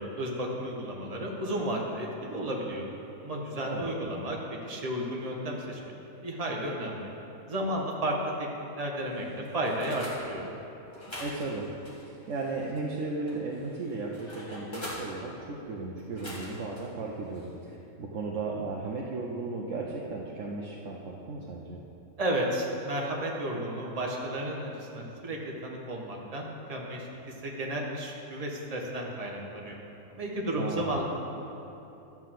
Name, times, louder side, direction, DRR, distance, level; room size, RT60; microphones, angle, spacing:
voice 1, 0.0-2.8 3.2-4.4 4.7-5.8 6.2-7.1 7.5-9.2 9.5-10.5 22.2-27.1 27.4-29.7 30.1-31.0, right 1 dB, 30° right, -1 dB, 1.3 m, -33 dB
sound 1, 9.1-10.2 10.9-12.8 13.3-15.0 16.0-16.8 17.3-17.5, left 1 dB, 20° left, 2.0 m, -43 dB
voice 2, 11.2-11.7 12.1-21.8 30.6-31.0, right 3 dB, 65° right, -3 dB, 1.1 m, -35 dB
12.0 x 4.6 x 7.6 m, 3.0 s
omnidirectional pair, 1.5 m